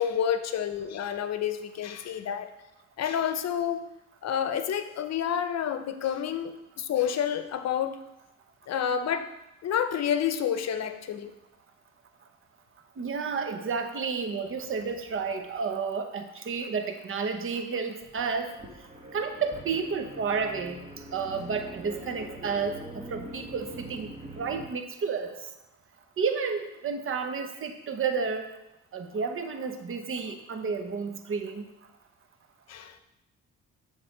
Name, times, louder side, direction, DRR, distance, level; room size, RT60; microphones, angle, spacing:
voice 1, 0.0-2.5 3.0-3.8 4.2-6.5 6.8-8.0 8.7-9.3 9.6-11.3 32.7-32.9, left 9 dB, 60° left, 10 dB, 0.7 m, -29 dB
voice 2, 13.0-18.5 19.1-20.8 21.1-24.1 24.4-25.3 26.2-28.5 28.9-31.7, right 5 dB, 45° right, 6 dB, 0.9 m, -31 dB
sound 1, 18.0-24.7, right 1 dB, 20° right, 1.3 m, -43 dB
7.8 x 3.5 x 6.6 m, 0.89 s
cardioid pair, 90°, 30 cm